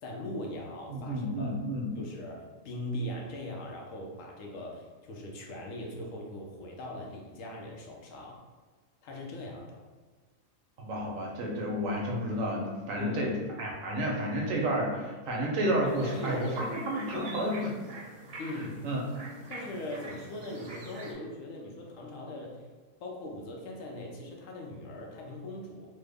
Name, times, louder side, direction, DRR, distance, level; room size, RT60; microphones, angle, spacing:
voice 1, 0.0-1.5 2.0-8.4 9.0-9.8 13.0-13.3 16.0-16.4 17.1-17.3 18.4-18.8 19.5-22.6 23.0-25.9, left 1 dB, 75° left, 0 dB, 1.0 m, -40 dB
voice 2, 0.9-1.9 10.8-13.3 13.6-17.7 18.8-19.0, right 1 dB, 80° right, -1 dB, 1.1 m, -31 dB
sound 1, 15.8-21.1, right 2 dB, 55° right, 0.8 m, -45 dB
3.3 x 2.0 x 3.4 m, 1.3 s
omnidirectional pair, 1.4 m